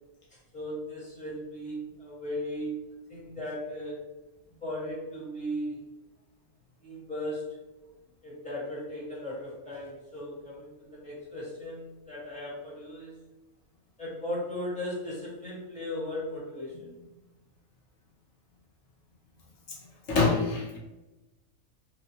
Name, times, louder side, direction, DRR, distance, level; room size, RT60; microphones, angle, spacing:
voice 1, 0.3-2.8 3.1-3.9 4.6-5.8 6.8-7.5 8.2-13.2 14.0-17.0, left 1 dB, 5° left, -8 dB, 0.8 m, -37 dB
voice 2, 20.1-20.8, left 3 dB, 70° left, -3 dB, 1.0 m, -25 dB
2.9 x 2.0 x 2.7 m, 1.1 s
omnidirectional pair, 1.5 m